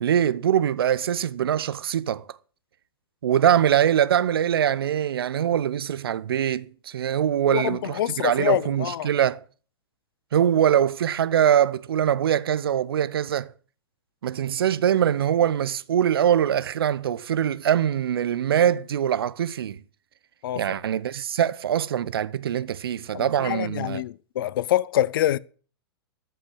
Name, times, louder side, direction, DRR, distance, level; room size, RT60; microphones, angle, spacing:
voice 1, 0.0-2.4 3.2-9.4 10.3-13.5 14.2-19.8 20.6-24.0, right 10 dB, 70° right, 0.7 m, -23 dB
voice 2, 7.5-9.1 20.4-20.8 23.1-25.4, left 12 dB, 60° left, 0.6 m, -26 dB
13.5 x 5.8 x 7.7 m
hypercardioid pair, 110°, 13 cm